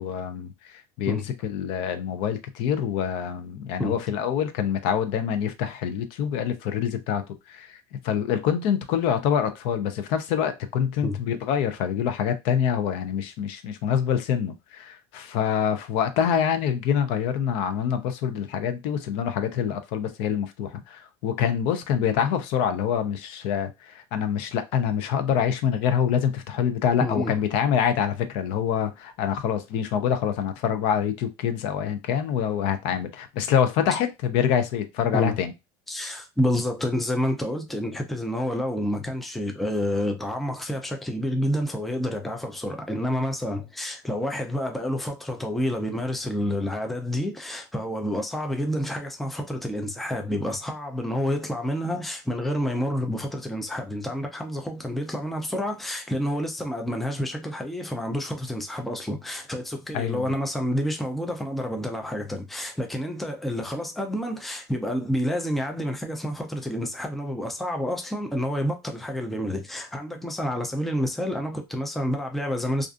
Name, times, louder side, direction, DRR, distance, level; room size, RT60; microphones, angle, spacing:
voice 1, 0.0-7.2 7.5-7.7 8.0-35.5 59.9-60.2, left 8 dB, 60° left, 0.5 m, -26 dB
voice 2, 27.0-27.4 35.1-35.4 35.9-72.9, equal, ahead, 0.4 m, -29 dB
2.4 x 2.4 x 2.4 m
supercardioid pair, 145°, 10 cm